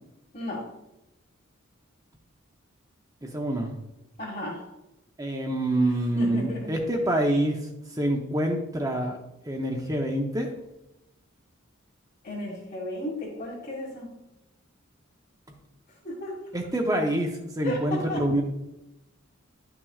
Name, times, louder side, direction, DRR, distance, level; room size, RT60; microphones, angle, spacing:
voice 1, 0.3-0.7 4.2-4.7 5.8-6.7 12.2-14.1 15.9-16.4 17.6-18.2, left 1 dB, 45° left, -7 dB, 1.9 m, -34 dB
voice 2, 3.2-3.7 5.2-7.6 7.9-9.2 9.5-10.5 16.5-18.4, right 1 dB, 15° right, 2 dB, 0.6 m, -26 dB
11.0 x 5.9 x 2.4 m, 0.92 s
head